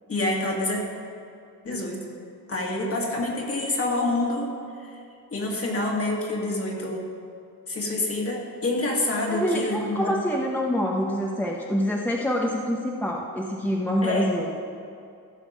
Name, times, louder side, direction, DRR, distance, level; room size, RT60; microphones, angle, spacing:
voice 1, 0.1-0.8 1.6-2.0 2.5-4.5 4.8-5.0 5.3-7.1 7.7-10.1 14.0-14.4, left 2 dB, 40° left, -1 dB, 2.2 m, -27 dB
voice 2, 9.3-14.5, equal, 5° left, -1 dB, 0.9 m, -26 dB
15.0 x 5.9 x 5.2 m, 2.5 s
cardioid pair, 100°, 36 cm